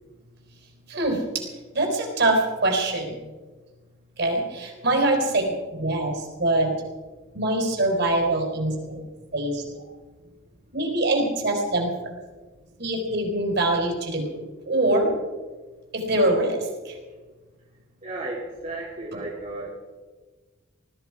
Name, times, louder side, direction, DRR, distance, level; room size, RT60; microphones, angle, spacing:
voice 1, 0.9-1.5 1.7-3.3 4.2-5.4 5.7-6.7 7.3-9.0 9.3-9.8 10.7-11.9 12.8-14.4 14.7-15.1 15.9-17.0 19.1-19.2, right 2 dB, 55° right, 1 dB, 4.3 m, -24 dB
voice 2, 18.0-19.7, right 2 dB, 40° right, -5 dB, 2.7 m, -34 dB
20.0 x 14.5 x 4.8 m, 1.3 s
head